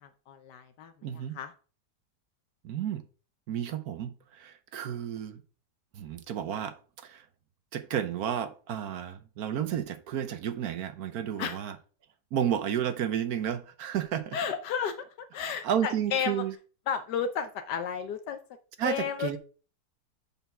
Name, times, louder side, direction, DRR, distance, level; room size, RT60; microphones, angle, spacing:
voice 1, 0.0-1.5 11.4-11.6 14.3-16.4 16.9-18.4 18.8-19.4, left 7 dB, 75° left, 1.3 m, -33 dB
voice 2, 1.0-1.4 2.6-3.0 3.5-5.4 5.9-7.3 7.7-11.8 12.3-14.4 15.6-16.5 18.8-19.4, right 9 dB, 65° right, 1.2 m, -32 dB
6.8 x 4.4 x 5.8 m
omnidirectional pair, 1.8 m